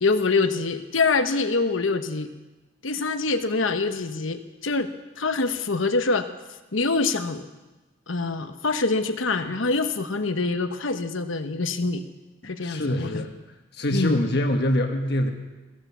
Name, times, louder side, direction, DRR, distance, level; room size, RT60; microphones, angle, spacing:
voice 1, 0.0-2.3 2.8-4.9 5.2-6.3 6.7-7.5 8.1-12.1 12.4-13.3 13.9-14.2, left 3 dB, 85° left, 9 dB, 1.1 m, -25 dB
voice 2, 12.6-13.3 13.7-15.3, left 1 dB, 55° left, 4 dB, 1.4 m, -24 dB
15.5 x 12.5 x 7.3 m, 1.2 s
head